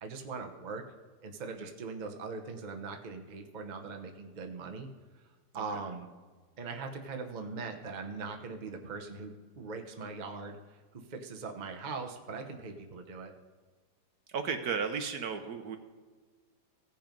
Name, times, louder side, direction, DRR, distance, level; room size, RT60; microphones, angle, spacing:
voice 1, 0.0-0.8 1.2-4.9 5.5-6.1 6.6-10.6 10.9-13.3, right 4 dB, 40° right, 4 dB, 0.7 m, -41 dB
voice 2, 14.3-15.8, right 6 dB, 65° right, 7 dB, 1.2 m, -34 dB
16.0 x 5.5 x 5.2 m, 1.4 s
omnidirectional pair, 2.0 m